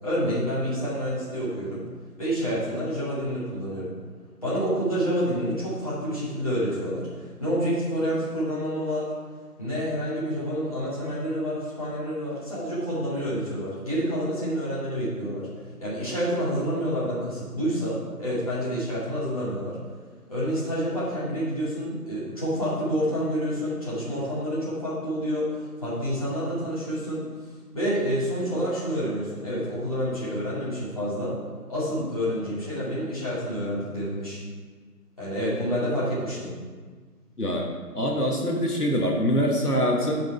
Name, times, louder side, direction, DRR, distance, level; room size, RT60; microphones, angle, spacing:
voice 1, 0.0-1.8 2.2-3.9 4.4-9.1 9.6-15.4 15.8-19.8 20.3-27.2 27.7-31.4 31.7-34.4 35.2-36.5, equal, 25° left, -11 dB, 2.2 m, -28 dB
voice 2, 37.9-40.2, equal, 75° left, -1 dB, 1.5 m, -24 dB
10.0 x 5.1 x 4.5 m, 1.5 s
figure-of-eight pair, 175°, 47 cm